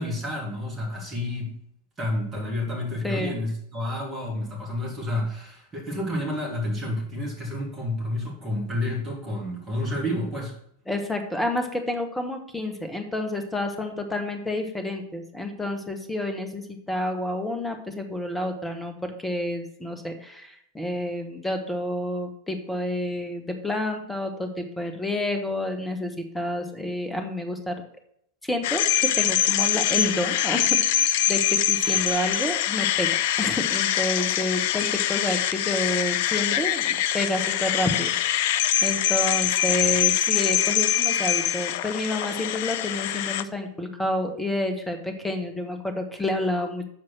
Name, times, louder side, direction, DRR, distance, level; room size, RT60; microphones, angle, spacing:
voice 1, 0.0-1.5 2.0-10.5, left 1 dB, 20° right, -2 dB, 2.9 m, -30 dB
voice 2, 3.0-3.4 10.9-27.8 28.4-33.1 33.4-46.9, left 1 dB, 5° left, 6 dB, 1.2 m, -29 dB
sound 1, 28.6-43.4, left 11 dB, 50° left, 0.3 m, -24 dB
7.2 x 4.7 x 6.2 m, 0.70 s
figure-of-eight pair, 90°, 0 cm